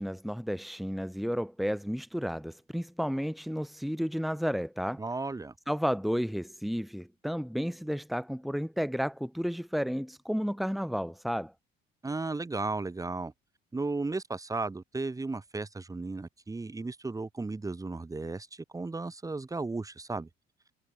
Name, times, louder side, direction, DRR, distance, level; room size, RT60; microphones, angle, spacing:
voice 1, 0.0-5.0 5.7-11.5, equal, ahead, 5.4 m, -32 dB
voice 2, 5.0-5.5 12.0-13.3 13.7-20.3, right 3 dB, 15° right, 7.0 m, -35 dB
cardioid pair, 110°, 21 cm